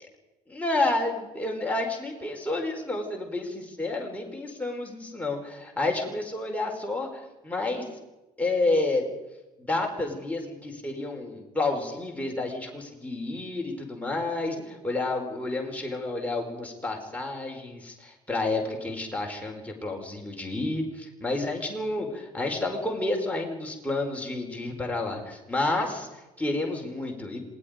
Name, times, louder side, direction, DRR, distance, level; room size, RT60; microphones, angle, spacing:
voice 1, 0.5-8.0 8.4-9.1 9.6-27.4, left 2 dB, 5° left, 0 dB, 4.9 m, -30 dB
27.0 x 19.0 x 5.2 m, 1.1 s
figure-of-eight pair, 50°, 21 cm